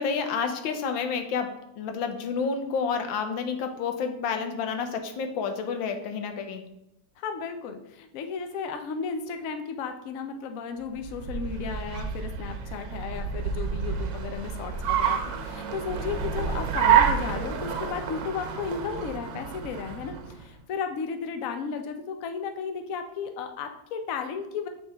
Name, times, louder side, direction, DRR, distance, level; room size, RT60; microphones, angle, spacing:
voice 1, 0.0-6.6, left 5 dB, 85° left, 6 dB, 1.5 m, -30 dB
voice 2, 7.2-24.7, left 6 dB, 65° left, 6 dB, 0.8 m, -34 dB
Car, 10.9-20.4, right 7 dB, 75° right, 1.4 m, -28 dB
8.0 x 3.5 x 3.4 m, 0.86 s
omnidirectional pair, 2.0 m